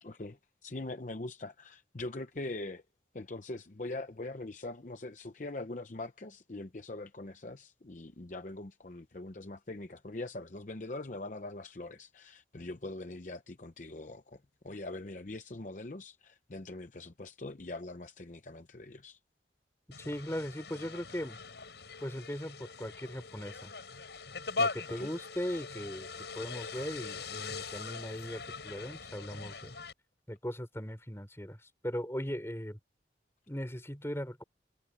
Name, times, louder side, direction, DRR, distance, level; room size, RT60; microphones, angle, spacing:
voice 1, 0.0-2.8 3.1-14.4 14.6-19.2 25.0-25.1, left 2 dB, 45° left, 0.8 m, -42 dB
sound 1, 19.9-29.9, left 4 dB, 80° left, 5.7 m, -40 dB
voice 2, 20.0-21.4 22.0-23.7 24.6-26.1 26.4-29.8 30.3-32.8 33.5-34.4, equal, 15° left, 4.6 m, -39 dB
head